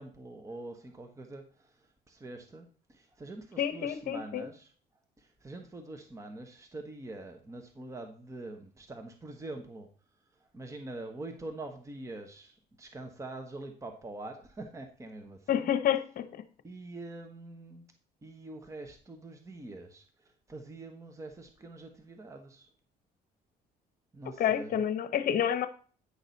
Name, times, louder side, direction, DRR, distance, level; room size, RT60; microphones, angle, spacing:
voice 1, 0.0-4.7 5.2-9.9 10.5-15.7 16.6-17.9 18.2-22.7 24.1-24.8, right 2 dB, 20° right, 5 dB, 1.1 m, -45 dB
voice 2, 3.6-4.5 15.5-16.3 24.4-25.7, left 9 dB, 55° left, 12 dB, 0.9 m, -28 dB
9.7 x 6.1 x 4.0 m, 0.42 s
cardioid pair, 110°, 17 cm